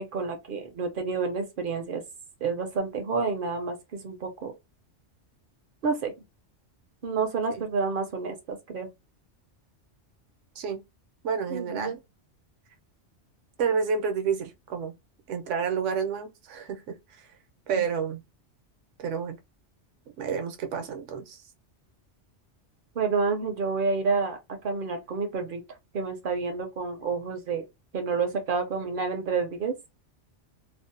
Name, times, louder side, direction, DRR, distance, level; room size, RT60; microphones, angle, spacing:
voice 1, 0.0-2.0 2.4-4.5 5.8-6.1 7.0-8.9 11.5-11.9 17.7-17.8 23.0-24.4 24.6-25.6 25.9-27.6 27.9-29.7, right 4 dB, 60° right, 0.6 m, -29 dB
voice 2, 11.2-12.0 13.6-14.9 15.3-17.0 17.7-18.2 19.0-19.4 20.2-21.4, right 6 dB, 80° right, 1.0 m, -29 dB
2.6 x 2.0 x 2.4 m
omnidirectional pair, 1.2 m